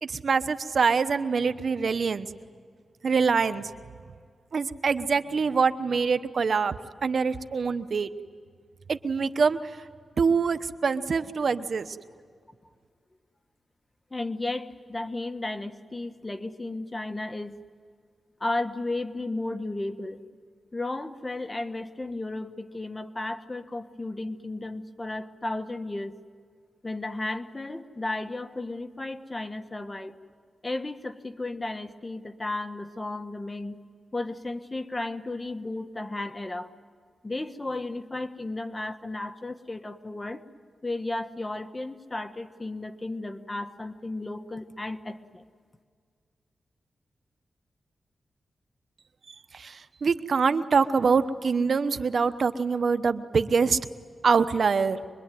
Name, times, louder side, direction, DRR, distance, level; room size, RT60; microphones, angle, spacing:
voice 1, 0.0-2.3 3.0-3.7 4.5-6.7 7.0-8.1 8.9-9.6 10.2-12.0 49.5-53.8 54.2-55.0, right 5 dB, 65° right, 11 dB, 1.0 m, -24 dB
voice 2, 14.1-17.6 18.4-20.2 20.7-26.1 26.8-30.1 30.6-33.8 34.1-36.7 37.2-40.4 40.8-45.4, left 2 dB, 25° left, 8 dB, 1.5 m, -34 dB
25.5 x 23.0 x 9.4 m, 2.1 s
cardioid pair, 70°, 0 cm